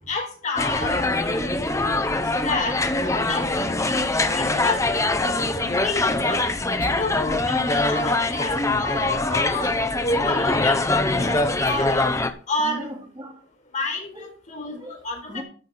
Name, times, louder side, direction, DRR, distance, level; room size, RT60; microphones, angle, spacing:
voice 1, 0.1-1.5 2.4-3.5 4.1-4.8 5.6-6.5 7.0-7.4 7.7-9.7 10.0-10.8 11.2-12.2 12.5-12.9 13.7-14.8 15.0-15.4, left 2 dB, 40° left, 4.4 m, -29 dB
sound 1, 0.6-12.3, left 2 dB, 15° left, 0.9 m, -23 dB
voice 2, 0.9-1.7 6.8-8.2 10.3-10.5 12.6-13.4 14.1-15.4, equal, 25° right, 2.6 m, -38 dB
13.5 x 5.7 x 6.0 m
head